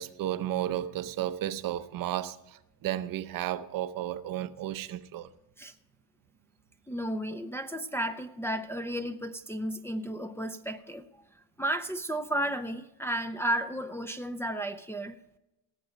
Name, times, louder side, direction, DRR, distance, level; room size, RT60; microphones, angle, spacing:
voice 1, 0.0-5.3, right 12 dB, 55° right, 0.7 m, -33 dB
voice 2, 6.9-11.0 11.6-15.2, right 1 dB, 5° left, 0.5 m, -33 dB
18.0 x 7.7 x 5.1 m
cardioid pair, 135°, 42 cm